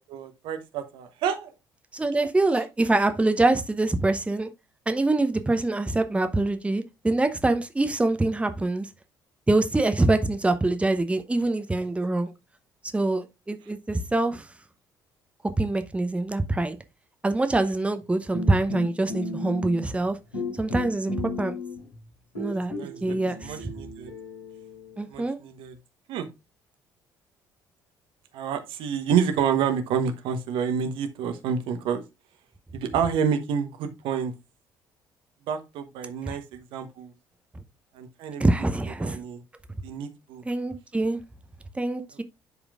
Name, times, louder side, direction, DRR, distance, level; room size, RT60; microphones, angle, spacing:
voice 1, 0.0-1.5 22.5-24.1 25.1-25.7 26.1-26.3 28.3-32.0 32.7-34.3 35.5-37.1 37.9-38.5 39.0-39.4 39.8-40.4, right 7 dB, 60° right, 1.1 m, -29 dB
voice 2, 1.9-4.5 4.9-8.9 9.5-12.3 12.9-14.5 15.6-16.8 17.2-20.2 20.6-21.6 22.4-22.7 23.0-23.7 25.0-25.4 36.3-36.4 38.4-39.2 40.4-41.2 41.7-42.2, right 2 dB, 10° right, 0.9 m, -24 dB
sound 1, 18.3-20.1 20.3-21.9 22.3-25.0, left 2 dB, 80° left, 4.5 m, -35 dB
11.0 x 4.9 x 2.5 m
figure-of-eight pair, 50°, 10 cm